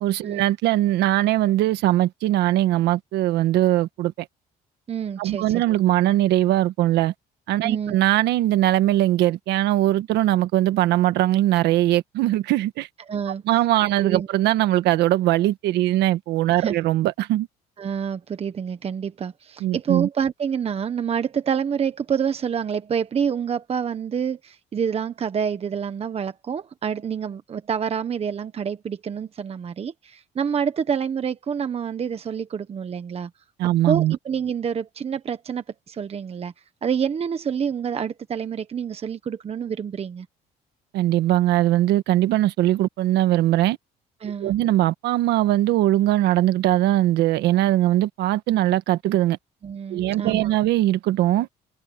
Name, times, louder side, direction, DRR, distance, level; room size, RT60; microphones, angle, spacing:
voice 1, 0.0-4.3 5.2-7.1 7.5-12.9 13.5-17.5 19.6-20.1 33.6-34.2 40.9-43.8 44.4-49.4 49.9-51.5, right 14 dB, 85° right, 1.6 m, -20 dB
voice 2, 4.9-5.6 7.6-7.9 13.1-13.4 14.0-14.3 16.6-16.8 17.8-33.3 33.9-36.5 36.8-40.3 44.2-44.5 49.6-50.5, right 7 dB, 35° right, 1.2 m, -27 dB
cardioid pair, 110°, 17 cm